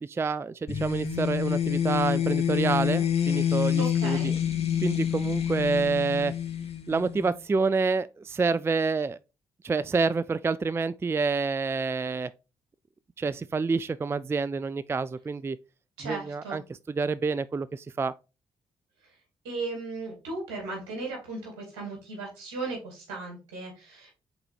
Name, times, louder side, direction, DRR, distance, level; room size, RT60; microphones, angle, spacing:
voice 1, 0.0-4.3 4.8-6.3 6.9-9.2 9.6-12.3 13.2-15.6 16.0-16.6 16.9-18.1, right 4 dB, 20° right, 0.3 m, -28 dB
sound 1, 0.7-7.3, left 9 dB, 50° left, 1.2 m, -27 dB
voice 2, 3.8-4.4 16.0-16.6 19.4-24.1, right 3 dB, 80° right, 2.7 m, -36 dB
5.3 x 4.2 x 4.5 m
hypercardioid pair, 40°, 13 cm